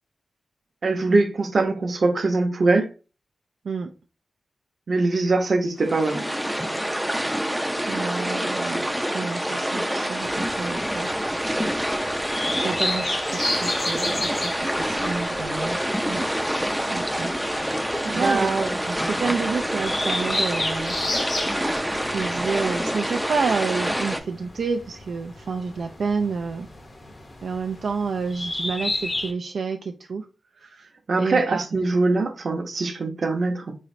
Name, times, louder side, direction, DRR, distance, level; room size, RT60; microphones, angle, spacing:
voice 1, 0.8-2.9 4.9-6.2 18.1-18.7 31.1-33.7, right 3 dB, 55° right, 0.7 m, -22 dB
sound 1, 5.8-24.2, equal, 5° right, 0.4 m, -27 dB
voice 2, 7.9-8.9 9.1-11.1 12.5-15.8 16.1-16.3 16.6-17.3 18.0-21.0 21.2-26.7 27.4-30.3 30.6-30.9 31.2-31.6, right 5 dB, 75° right, 0.3 m, -29 dB
sound 2, 10.2-29.3, left 2 dB, 35° left, 0.7 m, -33 dB
3.9 x 3.1 x 2.5 m
wide cardioid pair, 110°, 0 cm